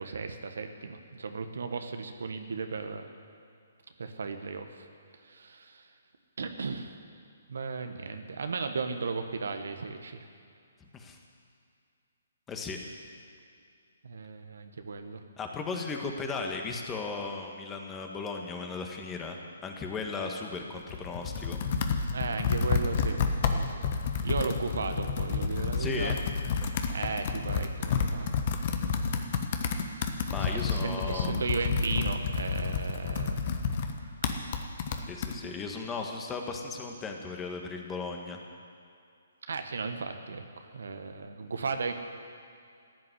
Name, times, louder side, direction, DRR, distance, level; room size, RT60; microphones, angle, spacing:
voice 1, 0.0-3.1 4.0-4.9 5.2-5.9 6.4-6.9 7.5-10.2 14.0-15.2 22.1-23.2 23.5-23.9 24.2-26.1 26.9-28.3 28.6-29.2 29.9-33.4 39.5-41.9, right 4 dB, 70° right, 7 dB, 1.3 m, -35 dB
voice 2, 10.8-11.2 12.5-12.8 15.4-19.4 19.6-21.6 25.8-26.2 30.3-31.4 35.0-38.4, left 4 dB, 15° left, 2 dB, 1.6 m, -36 dB
Computer keyboard, 20.7-35.4, left 5 dB, 45° left, 1.2 m, -30 dB
15.0 x 7.7 x 9.9 m, 2.4 s
figure-of-eight pair, 135°, 0 cm